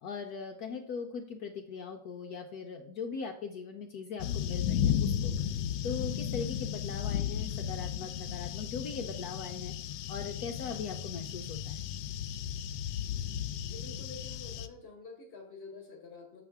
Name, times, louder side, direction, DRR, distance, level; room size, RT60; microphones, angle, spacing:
voice 1, 0.0-5.3 5.8-9.7 10.1-11.9, left 5 dB, 70° left, 4 dB, 1.0 m, -40 dB
sound 1, 4.2-14.7, left 9 dB, 85° left, 1.3 m, -34 dB
voice 2, 13.6-16.5, left 4 dB, 40° left, 1 dB, 1.2 m, -48 dB
6.9 x 6.3 x 3.5 m, 0.67 s
omnidirectional pair, 1.9 m